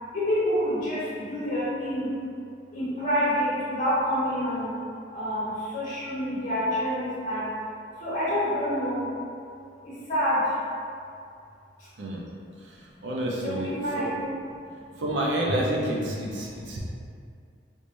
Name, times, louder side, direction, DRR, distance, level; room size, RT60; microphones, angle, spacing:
voice 1, 0.1-2.1 2.7-4.7 5.1-7.5 8.0-9.1 9.8-10.5 13.4-14.2, equal, 40° left, -11 dB, 1.1 m, -27 dB
voice 2, 12.6-14.1 15.0-16.8, right 1 dB, 90° right, -3 dB, 0.6 m, -29 dB
3.5 x 3.2 x 2.6 m, 2.4 s
head